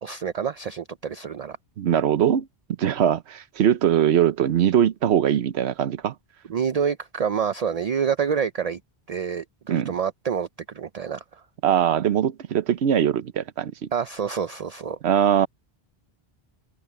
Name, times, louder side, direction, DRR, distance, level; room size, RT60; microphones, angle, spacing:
voice 1, 0.0-1.6 6.5-8.8 9.1-10.5 10.7-11.4 13.9-15.0, right 7 dB, 45° right, 0.5 m, -27 dB
voice 2, 1.8-2.5 2.8-6.1 9.7-9.9 11.6-13.9 15.0-15.5, right 9 dB, 80° right, 1.0 m, -21 dB
open air
omnidirectional pair, 1.1 m